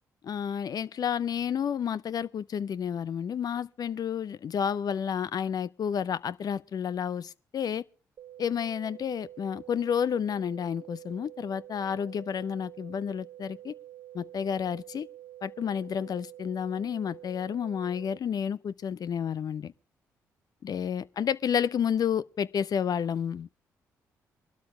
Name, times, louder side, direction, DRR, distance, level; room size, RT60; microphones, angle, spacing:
voice 1, 0.2-7.8 8.4-13.7 14.1-15.1 15.4-19.7 20.6-23.5, left 8 dB, 50° left, 0.6 m, -30 dB
sound 1, 8.2-18.2, right 13 dB, 50° right, 0.8 m, -48 dB
23.5 x 12.5 x 3.2 m
hypercardioid pair, 45°, 8 cm